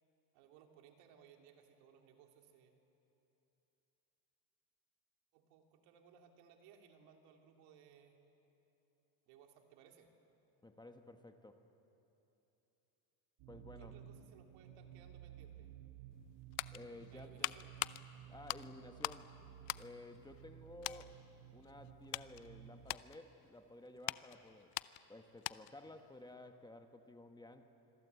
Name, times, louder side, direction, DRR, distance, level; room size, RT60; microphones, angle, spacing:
voice 1, 0.3-2.8 5.3-8.1 9.3-10.1 13.8-15.7 17.1-17.7, right 8 dB, 85° right, 3 dB, 3.2 m, -63 dB
voice 2, 10.6-11.6 13.5-13.9 16.7-17.7 18.3-19.4 19.7-21.2 21.5-24.7 25.1-27.7, left 2 dB, 10° left, 6 dB, 1.1 m, -54 dB
sound 1, 13.4-23.0, right 10 dB, 65° right, 1.1 m, -56 dB
sound 2, 16.1-19.3 19.6-20.5 20.8-21.1 21.6-25.9 26.2-26.3, left 21 dB, 90° left, 0.7 m, -44 dB
26.5 x 22.5 x 8.2 m, 3.0 s
cardioid pair, 140°, 47 cm